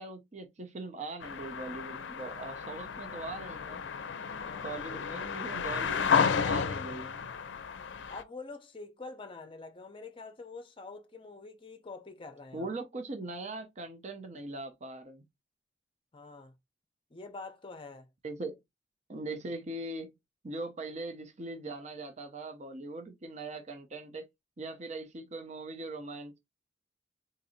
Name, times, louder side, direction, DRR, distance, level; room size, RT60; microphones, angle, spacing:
voice 1, 0.0-3.8 4.6-7.3 12.5-15.2 18.2-18.6 19.1-20.1 20.4-24.3 24.6-26.4, right 2 dB, 40° right, 0.6 m, -41 dB
sound 1, 1.2-8.2, left 6 dB, 75° left, 0.4 m, -32 dB
voice 2, 4.3-4.7 8.1-12.7 16.1-16.5 17.1-18.1, left 3 dB, 30° left, 0.6 m, -46 dB
3.9 x 2.6 x 2.6 m
head